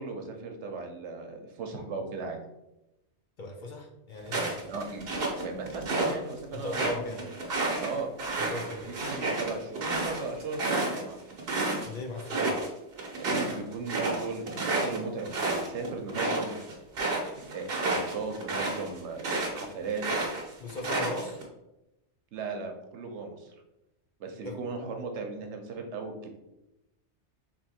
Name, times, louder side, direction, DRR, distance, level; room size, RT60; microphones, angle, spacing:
voice 1, 0.0-2.4 4.7-5.0 5.4-7.3 7.8-8.1 8.7-11.2 13.2-16.6 17.4-20.0 22.3-23.5 24.2-26.3, right 4 dB, 90° right, 4 dB, 1.1 m, -37 dB
voice 2, 3.4-4.7 6.5-7.2 8.4-8.9 11.8-12.5 20.6-21.4 24.4-24.6, left 2 dB, 50° left, 2 dB, 0.6 m, -37 dB
sound 1, 4.3-6.1 6.5-11.9 12.2-12.7 13.0-19.6 20.0-21.4, right 2 dB, 60° right, 1.1 m, -30 dB
3.7 x 2.9 x 4.2 m, 0.92 s
omnidirectional pair, 1.2 m